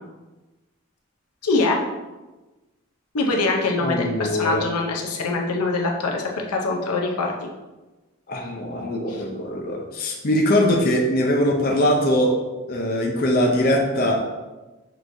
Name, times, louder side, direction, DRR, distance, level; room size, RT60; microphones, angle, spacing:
voice 1, 1.4-1.8 3.1-7.3 9.1-9.2, left 3 dB, 90° left, 0 dB, 0.7 m, -23 dB
voice 2, 3.8-4.6 8.3-12.4 12.7-14.2, equal, 40° left, 0 dB, 0.5 m, -21 dB
6.1 x 3.1 x 2.7 m, 1.1 s
head